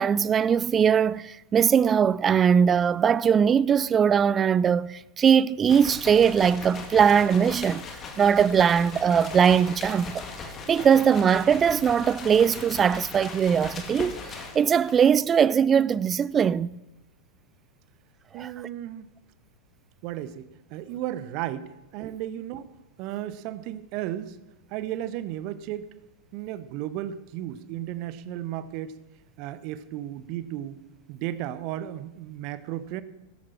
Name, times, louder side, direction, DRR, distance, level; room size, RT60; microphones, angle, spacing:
voice 1, 0.0-7.8 8.2-10.2 10.7-16.8 18.4-18.5, right 7 dB, 25° right, 0.4 m, -21 dB
sound 1, 5.7-15.0, left 4 dB, 25° left, 2.2 m, -39 dB
voice 2, 18.3-19.1 20.0-22.7 23.0-24.4 24.7-25.9 26.3-29.0 29.4-30.8 31.1-33.0, right 12 dB, 45° right, 0.9 m, -34 dB
16.0 x 13.5 x 4.4 m
figure-of-eight pair, 90°, 0 cm